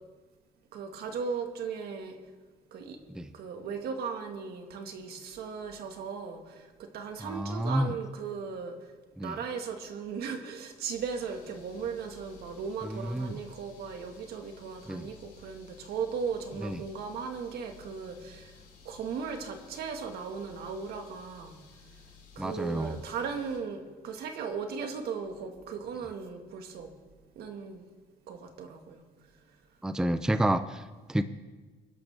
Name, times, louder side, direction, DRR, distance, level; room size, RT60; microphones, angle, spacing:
voice 1, 0.7-2.2 2.7-3.0 3.3-8.8 9.2-18.5 18.8-21.6 22.4-26.9 27.4-27.9 28.3-29.0, right 5 dB, 70° right, 4 dB, 1.9 m, -37 dB
voice 2, 7.2-8.0 9.2-9.4 12.8-13.4 14.9-15.1 16.6-16.8 22.4-23.0 29.8-31.2, right 1 dB, 5° right, 11 dB, 0.6 m, -30 dB
sound 1, 10.9-23.6, left 5 dB, 90° left, 5.3 m, -55 dB
23.5 x 12.0 x 3.6 m, 1.3 s
cardioid pair, 110°, 17 cm